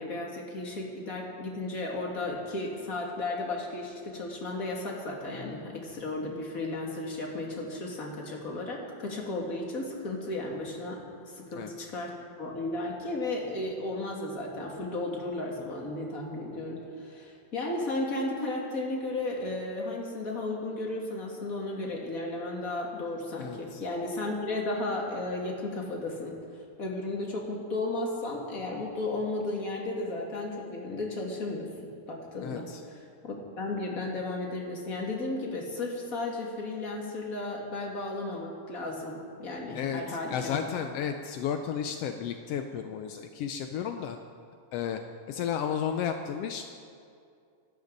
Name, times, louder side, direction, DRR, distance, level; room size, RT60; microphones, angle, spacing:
voice 1, 0.0-11.0 11.3-26.3 26.8-40.6, left 2 dB, 30° left, -1 dB, 2.4 m, -34 dB
voice 2, 11.5-11.9 23.4-23.8 32.4-32.8 39.7-44.2 44.7-45.0 45.3-46.6, left 8 dB, 80° left, 6 dB, 1.4 m, -33 dB
26.5 x 12.5 x 4.0 m, 2.4 s
omnidirectional pair, 3.5 m